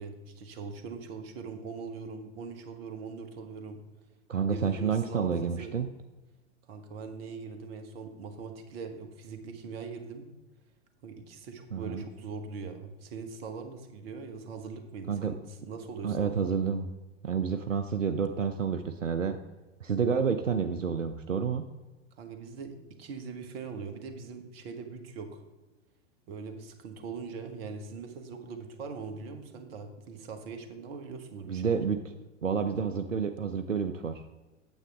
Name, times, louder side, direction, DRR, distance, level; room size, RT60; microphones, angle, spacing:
voice 1, 0.0-3.8 4.4-5.3 5.6-5.7 6.7-10.3 11.0-16.5 22.2-25.4 26.3-31.8, right 5 dB, 50° right, 6 dB, 1.4 m, -41 dB
voice 2, 4.3-5.9 11.7-12.0 15.1-15.3 16.0-16.9 17.2-19.4 19.8-21.6 31.5-32.0 32.4-34.2, right 6 dB, 90° right, 8 dB, 0.6 m, -29 dB
8.9 x 8.0 x 3.5 m, 1.2 s
figure-of-eight pair, 95°, 37 cm